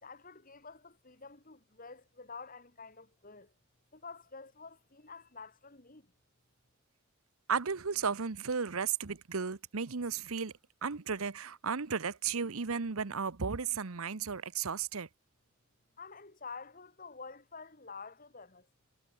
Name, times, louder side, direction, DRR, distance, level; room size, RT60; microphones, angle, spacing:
voice 1, 0.0-3.5 3.9-6.1 16.0-18.7, left 4 dB, 40° left, 2.4 m, -49 dB
voice 2, 7.5-10.5 10.8-15.1, right 6 dB, 85° right, 0.9 m, -34 dB
head